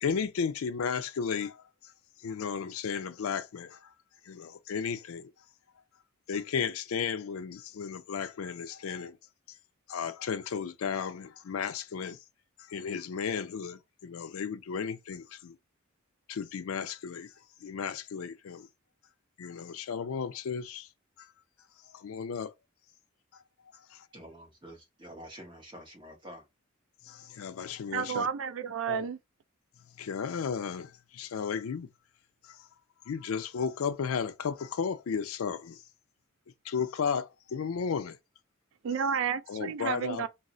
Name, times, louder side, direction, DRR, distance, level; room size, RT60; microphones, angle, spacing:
voice 1, 0.0-1.6 2.2-3.8 4.3-5.3 6.3-9.2 9.9-12.2 12.7-15.6 16.3-17.3 17.6-18.7 19.4-20.9 21.9-22.5 23.9-24.0 27.1-28.3 28.9-29.1 30.0-31.9 32.5-32.6 33.1-35.8 36.7-38.2 39.5-40.3, left 6 dB, 85° left, 0.4 m, -34 dB
voice 2, 24.1-26.5, equal, 25° right, 1.1 m, -48 dB
voice 3, 27.9-29.2 38.8-40.3, right 7 dB, 65° right, 0.4 m, -31 dB
2.4 x 2.1 x 3.7 m
head